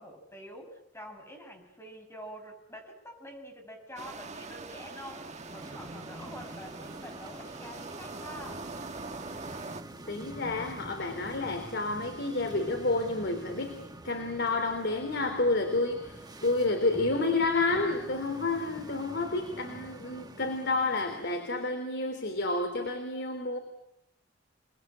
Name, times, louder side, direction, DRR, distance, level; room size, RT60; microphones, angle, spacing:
voice 1, 0.0-8.7, equal, 15° left, 4 dB, 6.9 m, -46 dB
sound 1, 4.0-9.8, right 3 dB, 35° right, 2.0 m, -43 dB
sound 2, 5.1-21.7, right 1 dB, 20° right, 2.0 m, -46 dB
voice 2, 10.1-23.6, left 2 dB, 60° left, 6 dB, 3.4 m, -30 dB
29.0 x 20.5 x 8.9 m, 0.77 s
head